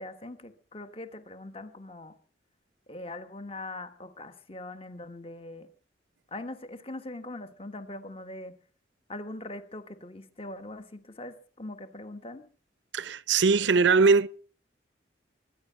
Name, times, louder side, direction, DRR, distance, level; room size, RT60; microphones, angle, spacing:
voice 1, 0.0-2.1 2.9-5.7 6.3-8.5 9.1-12.4, left 2 dB, 30° left, 1.3 m, -41 dB
voice 2, 12.9-14.3, right 4 dB, 75° right, 0.6 m, -21 dB
23.5 x 10.0 x 5.7 m
head